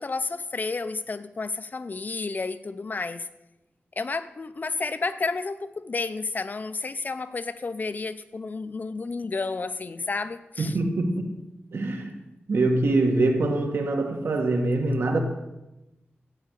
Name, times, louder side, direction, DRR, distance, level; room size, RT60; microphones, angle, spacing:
voice 1, 0.0-3.3 4.0-10.8, left 3 dB, 45° left, 12 dB, 0.7 m, -31 dB
voice 2, 10.6-11.3 11.7-12.2 12.5-15.2, right 2 dB, 70° right, 3 dB, 1.9 m, -24 dB
13.0 x 9.3 x 6.7 m, 0.97 s
wide cardioid pair, 120°, 4 cm